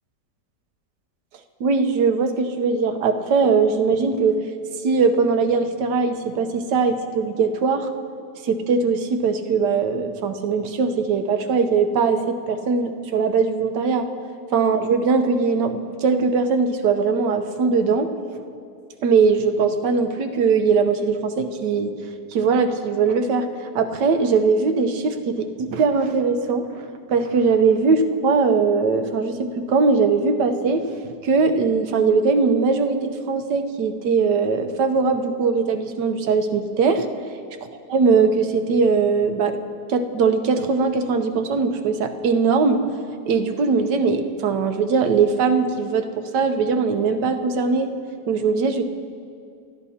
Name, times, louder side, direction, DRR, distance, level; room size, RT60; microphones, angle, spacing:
voice 1, 1.6-4.4 4.8-7.9 8.4-14.1 14.5-18.1 19.0-21.9 22.3-23.5 23.7-26.8 27.1-30.9 31.2-37.1 37.9-39.6 39.9-42.8 43.2-47.9 48.3-48.8, right 4 dB, 75° right, 7 dB, 1.5 m, -20 dB
26.5 x 13.0 x 2.8 m, 2.4 s
omnidirectional pair, 1.9 m